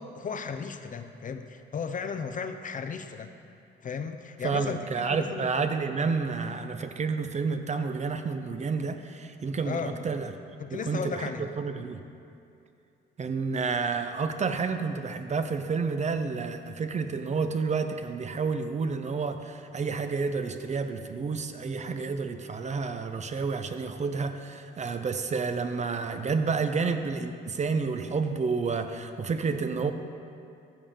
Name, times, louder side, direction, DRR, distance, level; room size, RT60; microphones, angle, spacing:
voice 1, 0.0-3.3 3.8-5.5 9.6-10.0 10.6-11.5, left 6 dB, 40° left, 8 dB, 0.6 m, -35 dB
voice 2, 4.4-10.3 10.7-12.0 13.2-29.9, right 4 dB, 35° right, 8 dB, 0.6 m, -30 dB
14.0 x 6.9 x 3.6 m, 2.6 s
cardioid pair, 90°, 20 cm